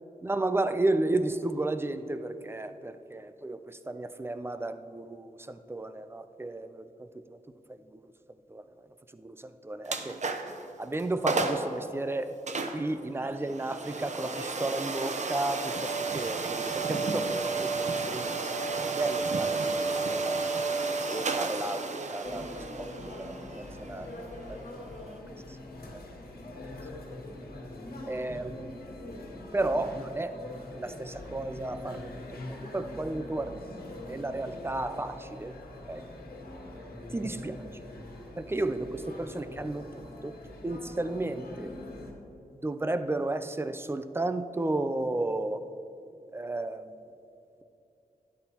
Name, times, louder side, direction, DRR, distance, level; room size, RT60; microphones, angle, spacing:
voice 1, 0.3-3.6 3.9-6.8 8.5-8.6 9.2-9.4 9.6-10.2 10.8-12.3 12.7-17.7 18.1-18.5 18.8-20.4 21.1-22.5 22.7-24.1 24.5-24.6 28.1-28.7 29.5-30.3 30.8-33.6 34.1-35.5 35.9-36.0 37.1-37.6 38.4-39.9 40.2-40.3 40.6-41.7 42.6-45.6 46.3-46.8, right 2 dB, 15° right, 10 dB, 0.4 m, -33 dB
sound 1, 9.8-10.6 11.0-11.1 11.3-11.7 12.5-25.2, right 3 dB, 50° right, 0.7 m, -32 dB
sound 2, 22.2-42.1, left 2 dB, 90° left, 1.5 m, -43 dB
12.5 x 9.8 x 2.9 m, 2.8 s
wide cardioid pair, 95°, 15 cm